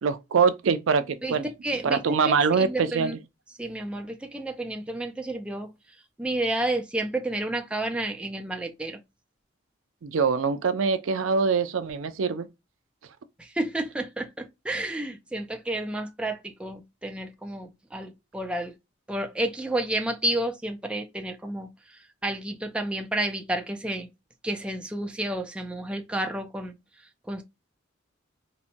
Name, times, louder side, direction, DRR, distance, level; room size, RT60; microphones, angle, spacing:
voice 1, 0.0-1.5 1.8-3.2 10.0-12.5, right 5 dB, 80° right, 0.4 m, -24 dB
voice 2, 1.6-3.2 3.6-5.7 6.2-9.0 13.4-18.7 19.1-21.7 22.2-24.1 24.4-26.7 27.3-27.4, right 1 dB, 5° right, 0.4 m, -31 dB
4.0 x 2.1 x 2.6 m
head